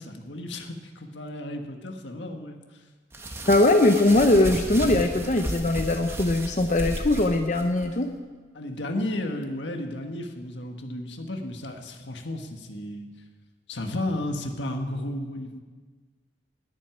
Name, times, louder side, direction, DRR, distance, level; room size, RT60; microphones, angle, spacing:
voice 1, 0.0-2.6 8.5-13.1 13.7-15.6, left 1 dB, 80° left, 4 dB, 1.6 m, -33 dB
sound 1, 3.1-7.9, right 1 dB, 15° right, 1.2 m, -33 dB
voice 2, 3.5-8.1, left 2 dB, 40° left, 5 dB, 0.7 m, -21 dB
11.0 x 9.9 x 9.6 m, 1.4 s
head